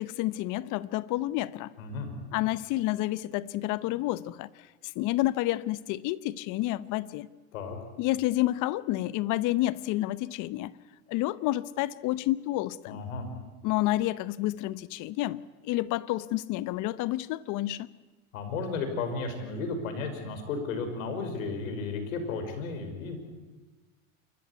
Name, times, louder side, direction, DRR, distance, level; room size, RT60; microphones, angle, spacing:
voice 1, 0.0-1.7 2.3-4.5 4.8-7.3 8.0-10.8 11.1-13.0 13.6-17.9, left 16 dB, 50° left, 0.8 m, -29 dB
voice 2, 1.8-2.1 7.5-7.8 12.9-13.3 18.3-23.2, left 4 dB, 80° left, 5.5 m, -33 dB
28.0 x 14.5 x 9.6 m
supercardioid pair, 115°, 41 cm